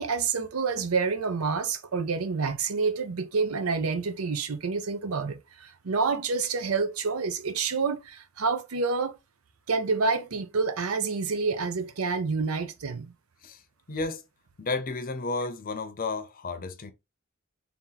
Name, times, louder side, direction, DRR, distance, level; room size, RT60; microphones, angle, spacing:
voice 1, 0.0-9.1 9.7-13.1, right 4 dB, 90° right, 0.6 m, -28 dB
voice 2, 13.9-14.2 14.6-16.9, left 3 dB, 40° left, 0.6 m, -32 dB
3.5 x 2.9 x 3.8 m
head